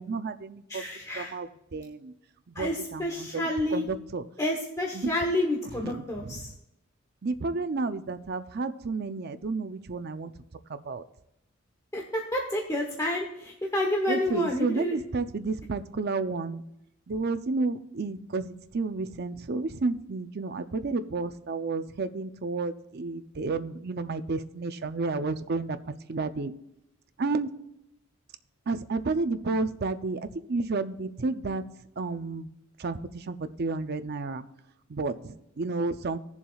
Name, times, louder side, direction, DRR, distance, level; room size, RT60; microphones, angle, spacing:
voice 1, 0.0-0.8 1.1-2.1 2.5-3.4 3.7-4.2 4.9-5.1 5.8-6.5 7.2-10.3 10.7-11.0 14.1-16.6 17.1-25.8 26.1-26.5 27.2-27.5 28.7-30.2 30.5-31.6 32.0-32.5 32.8-34.5 34.9-36.2, right 3 dB, 50° right, 10 dB, 0.5 m, -31 dB
voice 2, 0.7-1.3 2.5-3.8 4.4-6.5 11.9-15.0, left 1 dB, 15° left, 0 dB, 1.0 m, -29 dB
18.5 x 7.1 x 2.4 m, 0.84 s
head